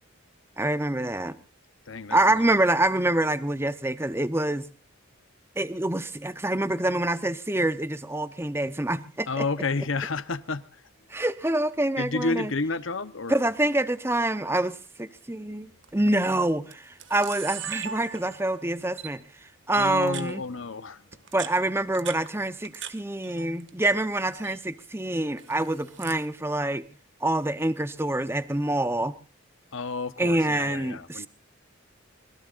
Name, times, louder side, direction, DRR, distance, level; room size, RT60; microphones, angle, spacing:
voice 1, 0.6-1.4 2.1-4.7 5.6-9.4 11.1-12.5 13.3-20.4 21.3-26.8 27.2-29.1 30.2-31.3, right 1 dB, 10° right, 0.8 m, -26 dB
voice 2, 1.9-2.4 9.3-10.8 12.0-13.4 19.7-21.1 29.7-31.3, left 3 dB, 65° left, 1.0 m, -31 dB
Camera, 15.8-16.1 16.7-16.8 17.0-18.6 19.0-19.1 19.7-20.3 21.1-22.9 23.2-23.9 24.2-24.6 25.4-26.2, right 9 dB, 60° right, 1.9 m, -39 dB
25.5 x 21.5 x 2.5 m
head